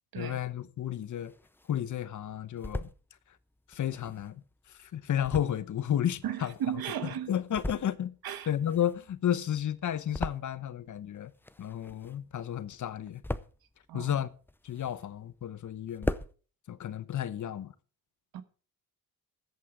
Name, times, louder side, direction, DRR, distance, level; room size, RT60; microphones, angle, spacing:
voice 1, 0.1-1.3 1.7-2.9 3.7-4.4 4.8-6.5 7.3-8.1 8.5-11.3 11.6-13.2 13.9-14.3 14.6-16.1 16.7-17.7, left 10 dB, 55° left, 0.9 m, -32 dB
sound 1, 0.8-1.8 2.3-3.0 3.7-7.0 7.4-8.2 8.4-10.9 11.1-12.4 12.7-13.7 14.2-15.3 15.6-15.7 15.9-16.3, left 1 dB, 5° left, 0.6 m, -39 dB
voice 2, 6.2-7.3 8.2-8.5 13.9-14.2 18.3-18.4, right 10 dB, 70° right, 1.3 m, -35 dB
14.0 x 8.5 x 4.9 m
cardioid pair, 100°, 37 cm